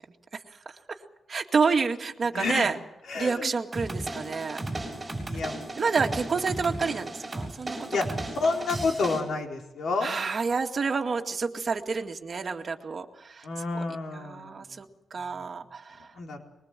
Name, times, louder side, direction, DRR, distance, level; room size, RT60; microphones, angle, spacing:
voice 1, 1.3-2.8 3.1-4.6 5.8-8.2 10.0-13.5 13.7-13.8 14.1-16.1, right 5 dB, 40° right, 4 dB, 2.1 m, -29 dB
voice 2, 2.3-2.7 3.1-3.5 5.3-5.6 7.9-8.0 8.4-10.1 13.4-14.6 16.2-16.4, left 3 dB, 65° left, 1 dB, 4.3 m, -29 dB
sound 1, 3.7-9.2, right 2 dB, 20° right, 7.0 m, -35 dB
23.5 x 22.0 x 7.7 m, 0.85 s
cardioid pair, 120°, 0 cm